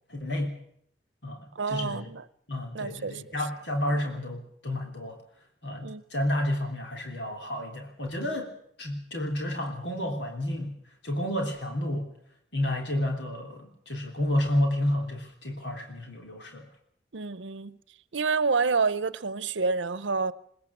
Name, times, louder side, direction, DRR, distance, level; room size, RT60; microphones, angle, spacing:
voice 1, 0.1-0.6 1.2-2.1 2.5-5.2 5.6-8.5 8.8-10.8 11.0-12.1 12.5-16.7, left 1 dB, 75° left, 3.5 m, -30 dB
voice 2, 1.5-2.2 2.7-3.3 3.9-4.0 5.8-6.0 17.1-17.8 18.1-20.3, right 4 dB, 90° right, 0.8 m, -28 dB
21.0 x 20.0 x 7.3 m
head